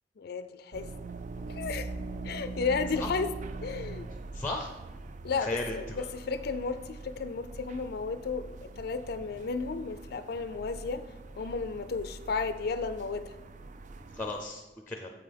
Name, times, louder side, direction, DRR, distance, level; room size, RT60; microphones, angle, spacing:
voice 1, 0.2-0.9 1.5-1.9 2.2-3.3 3.6-4.1 5.2-11.0 11.4-13.3, left 4 dB, 60° left, 11 dB, 0.4 m, -33 dB
sound 1, 0.7-14.4, right 3 dB, 45° right, 0.4 m, -42 dB
voice 2, 4.3-4.7 5.4-6.0 14.1-15.1, left 2 dB, 10° left, 3 dB, 0.6 m, -35 dB
7.7 x 5.5 x 5.2 m, 1.1 s
head